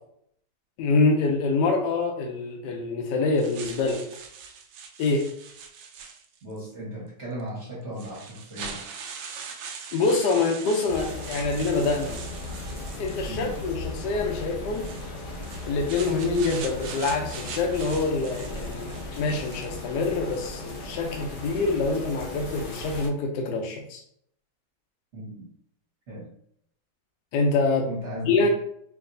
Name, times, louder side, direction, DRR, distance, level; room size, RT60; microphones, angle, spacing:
voice 1, 0.8-4.0 5.0-5.3 9.9-12.2 13.0-14.9 15.7-18.9 19.2-24.0 27.3-27.9 28.2-28.5, left 3 dB, 80° left, 2 dB, 1.2 m, -25 dB
sound 1, 3.4-6.6 7.4-7.5 8.0-13.7 14.7-19.9, right 6 dB, 90° right, 1.3 m, -41 dB
voice 2, 6.4-8.8 13.3-13.6 25.1-25.5 26.1-26.3 27.9-28.5, equal, 45° right, -8 dB, 1.5 m, -36 dB
sound 2, 10.9-23.1, left 2 dB, 60° left, 1.1 m, -37 dB
4.7 x 2.7 x 2.6 m, 0.68 s
omnidirectional pair, 1.8 m